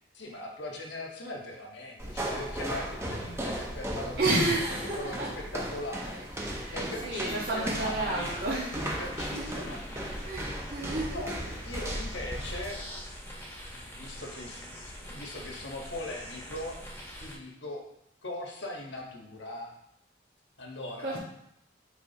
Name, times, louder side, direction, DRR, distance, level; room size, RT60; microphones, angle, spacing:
voice 1, 0.1-8.4 8.8-10.8 11.1-11.3 11.6-12.8 13.7-16.8 17.2-17.8 18.2-19.7 20.6-21.2, left 1 dB, 80° left, 0 dB, 1.4 m, -40 dB
sound 1, 2.0-12.7, right 1 dB, 15° right, 0.8 m, -36 dB
voice 2, 4.2-5.3 6.4-8.7 9.4-9.6 10.2-11.2 21.0-21.2, right 2 dB, 60° right, -8 dB, 1.5 m, -31 dB
sound 2, 7.1-17.4, equal, 10° left, 1.2 m, -44 dB
8.5 x 5.0 x 2.9 m, 0.78 s
head